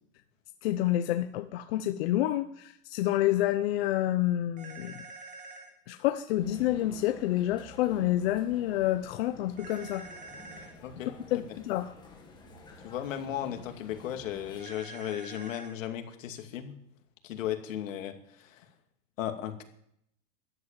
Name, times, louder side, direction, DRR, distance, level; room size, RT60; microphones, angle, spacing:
voice 1, 0.6-5.0 5.9-10.0 11.1-11.9, left 14 dB, 50° left, 8 dB, 0.9 m, -28 dB
sound 1, 4.6-5.7 9.6-10.7 14.6-15.7, right 3 dB, 20° right, 2.1 m, -46 dB
sound 2, 6.3-14.6, left 3 dB, 10° left, 2.3 m, -50 dB
voice 2, 10.8-11.4 12.8-16.8 17.2-18.6 19.2-19.6, left 10 dB, 75° left, 6 dB, 2.6 m, -36 dB
14.0 x 10.0 x 9.1 m, 0.74 s
supercardioid pair, 170°, 39 cm